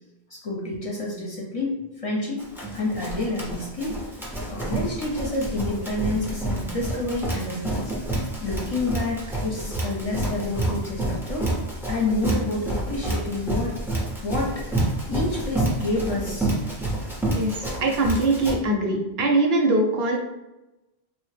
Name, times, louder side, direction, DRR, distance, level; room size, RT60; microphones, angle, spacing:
voice 1, 0.3-2.5 2.7-4.0 4.5-11.6 11.8-13.8 14.2-14.8 15.1-16.5, left 2 dB, 40° left, -3 dB, 0.7 m, -29 dB
Run, 2.4-18.6, right 2 dB, 5° right, 0.4 m, -29 dB
voice 2, 17.8-20.2, right 2 dB, 75° right, 0 dB, 0.8 m, -22 dB
3.3 x 2.0 x 3.2 m, 1.0 s
omnidirectional pair, 1.1 m